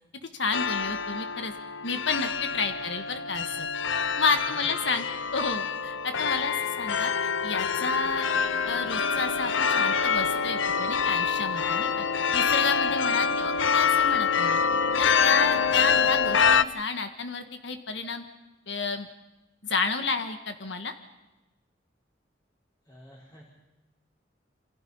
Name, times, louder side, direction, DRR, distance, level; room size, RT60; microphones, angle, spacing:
voice 1, 0.3-1.5 1.8-3.7 4.2-5.0 5.3-8.3 8.6-12.0 12.3-14.6 15.0-18.2 18.7-19.1 19.6-20.9, left 4 dB, 70° left, 7 dB, 1.6 m, -31 dB
sound 1, 0.5-16.6, left 6 dB, 90° left, 0.8 m, -26 dB
voice 2, 4.4-5.1 22.8-23.4, equal, 20° left, -3 dB, 4.4 m, -51 dB
28.0 x 26.5 x 5.6 m, 1.0 s
head